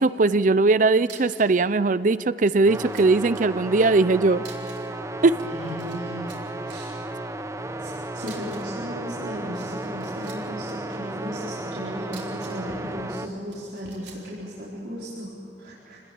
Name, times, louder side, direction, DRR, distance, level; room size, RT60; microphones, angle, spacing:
voice 1, 0.0-4.5 5.2-5.4, right 3 dB, 45° right, 16 dB, 0.5 m, -20 dB
sound 1, 1.0-1.6 1.8-1.9 2.4-3.4 4.4-5.0 5.2-6.0 6.3-6.8 8.2-8.8 9.4-10.7 12.0-12.7 13.5-14.3, right 7 dB, 80° right, 4.4 m, -47 dB
sound 2, 2.7-13.3, right 1 dB, 15° right, 0.8 m, -34 dB
voice 2, 5.3-6.3 6.7-6.9 7.8-16.0, equal, 65° right, -8 dB, 4.9 m, -36 dB
27.5 x 20.0 x 8.7 m, 2.9 s
head